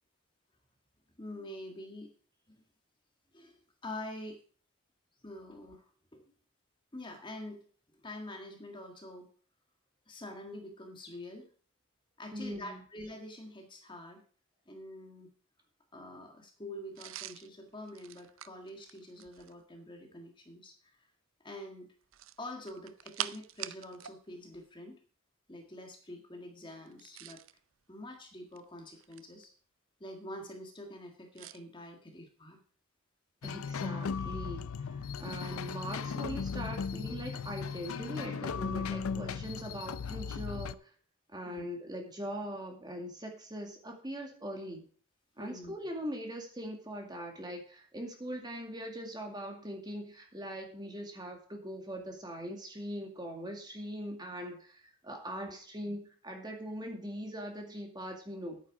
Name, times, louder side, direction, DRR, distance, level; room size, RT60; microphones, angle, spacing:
voice 1, 1.2-2.1 2.5-2.6 3.3-4.4 5.2-6.3 6.9-7.7 7.9-9.3 10.1-11.5 12.2-14.2 14.7-15.3 15.9-21.1 21.4-21.9 22.4-25.0 25.5-27.4 27.9-29.5 30.0-32.6 41.5-41.6 45.4-45.7 55.4-55.5 55.9-56.0, left 1 dB, 20° left, 3 dB, 1.8 m, -46 dB
voice 2, 12.3-12.8 33.4-40.9 41.3-44.9 45.4-58.6, equal, 20° right, 3 dB, 2.2 m, -41 dB
sound 1, 17.0-19.6 22.0-24.2 24.5-24.6 26.9-27.6 28.3-29.5 31.4-31.6, right 12 dB, 65° right, 0.5 m, -44 dB
sound 2, 33.4-40.7, left 5 dB, 80° left, 0.5 m, -37 dB
10.0 x 9.2 x 4.8 m, 0.42 s
head